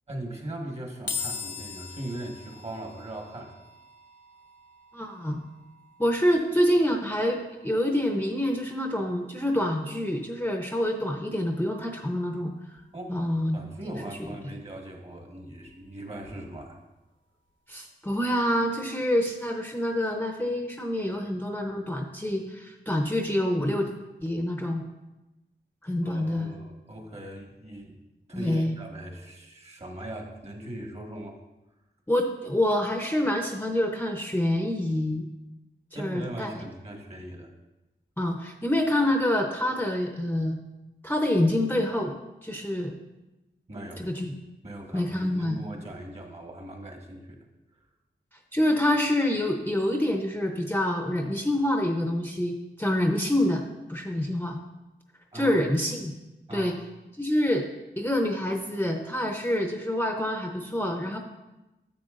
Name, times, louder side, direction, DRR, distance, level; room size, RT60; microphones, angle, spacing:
voice 1, 0.1-3.7 12.9-13.2 13.5-16.8 26.0-28.0 28.3-31.4 35.9-37.5 43.7-44.1 44.6-47.4 55.3-55.6 56.5-56.7, right 1 dB, 35° right, 1 dB, 1.4 m, -39 dB
sound 1, 1.1-14.4, left 5 dB, 80° left, 0.8 m, -44 dB
voice 2, 4.9-5.4 6.0-12.5 13.1-13.6 17.7-23.9 24.2-24.8 25.8-26.5 28.3-28.8 32.1-35.3 35.9-36.5 38.2-40.6 41.0-42.1 42.4-42.9 44.0-44.3 44.9-45.6 48.5-53.6 53.9-54.6 55.3-56.1 56.5-56.8 57.2-57.7 58.0-61.2, left 1 dB, 10° left, 2 dB, 0.7 m, -26 dB
10.5 x 7.2 x 2.5 m, 1.0 s
wide cardioid pair, 80°, 19 cm